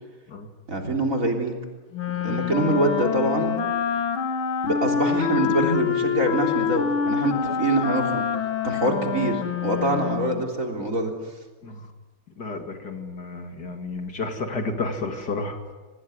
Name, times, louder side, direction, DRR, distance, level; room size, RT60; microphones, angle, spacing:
voice 1, 0.7-1.6 2.2-3.5 4.6-8.2 8.6-11.1, right 1 dB, 40° right, 2 dB, 3.8 m, -24 dB
Wind instrument woodwind instrument, 1.9-10.5, left 7 dB, 90° left, 2.3 m, -26 dB
voice 2, 2.1-2.4 7.5-7.6 11.6-11.9 12.4-15.7, left 3 dB, 55° left, 5 dB, 2.8 m, -32 dB
26.5 x 19.5 x 9.7 m, 1.3 s
omnidirectional pair, 2.2 m